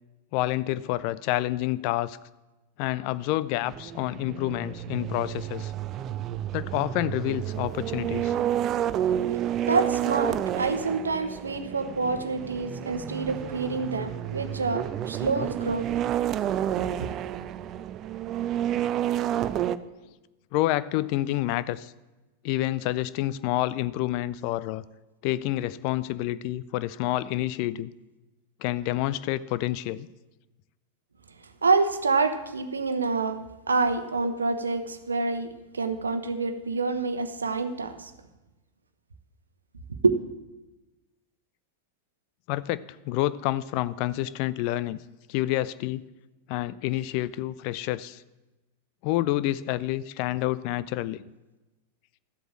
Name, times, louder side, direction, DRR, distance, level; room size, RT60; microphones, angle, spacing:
voice 1, 0.3-2.2 2.8-5.7 6.5-8.3 20.5-21.9 22.4-24.8 25.2-27.9 28.6-30.1 42.5-45.0 45.3-46.0 46.5-48.2 49.0-51.2, left 15 dB, 45° left, 17 dB, 0.5 m, -28 dB
sound 1, 3.7-19.8, right 11 dB, 35° right, 0.5 m, -30 dB
voice 2, 9.7-15.9 16.8-17.1 31.6-33.4 33.7-38.1 40.0-40.1, right 4 dB, 75° right, 9 dB, 1.0 m, -27 dB
13.0 x 7.9 x 7.3 m, 1.1 s
figure-of-eight pair, 90°, 0 cm